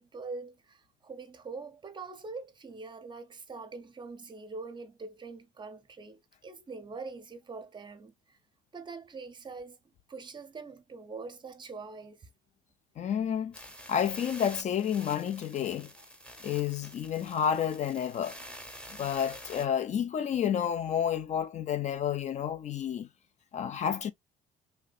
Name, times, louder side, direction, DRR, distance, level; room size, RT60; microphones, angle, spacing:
voice 1, 0.0-8.4 8.7-9.8 10.1-12.3, right 4 dB, 25° right, 0.6 m, -43 dB
voice 2, 13.0-13.5 13.9-15.9 16.4-18.4 19.0-23.1 23.5-24.1, left 9 dB, 45° left, 0.4 m, -30 dB
sound 1, 13.5-19.7, equal, 5° left, 0.8 m, -48 dB
3.2 x 2.6 x 2.3 m
cardioid pair, 110°, 17 cm